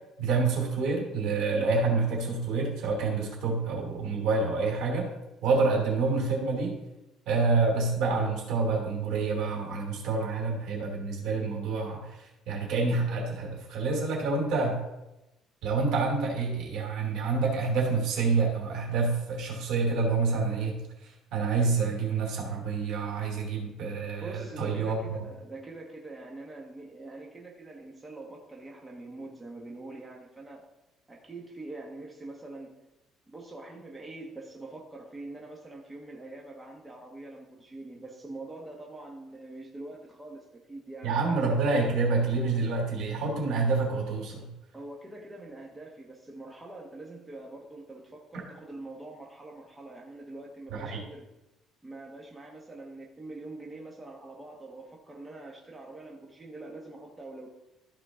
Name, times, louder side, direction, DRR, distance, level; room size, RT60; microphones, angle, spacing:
voice 1, 0.2-5.1 5.4-6.8 7.3-14.8 15.6-25.2 41.0-44.5 50.7-51.0, right 4 dB, 75° right, 0 dB, 2.8 m, -28 dB
voice 2, 24.2-30.6 31.1-32.7 33.3-41.4 44.7-51.3 51.8-57.5, right 2 dB, 15° right, -1 dB, 1.2 m, -44 dB
13.5 x 5.0 x 3.7 m, 0.95 s
cardioid pair, 145°, 0 cm